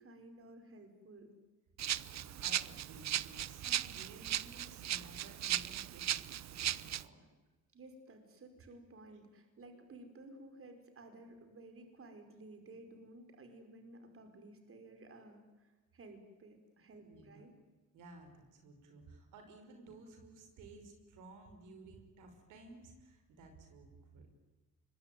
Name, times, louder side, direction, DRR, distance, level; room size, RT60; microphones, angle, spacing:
voice 1, 0.0-1.3 7.7-17.5, right 2 dB, 45° right, 6 dB, 5.3 m, -55 dB
Rattle (instrument), 1.8-7.0, right 12 dB, 65° right, 0.9 m, -37 dB
voice 2, 1.9-7.2 17.0-17.5 17.9-24.3, right 2 dB, 90° right, 5 dB, 5.8 m, -56 dB
25.5 x 23.0 x 9.5 m, 1.2 s
cardioid pair, 90°, 30 cm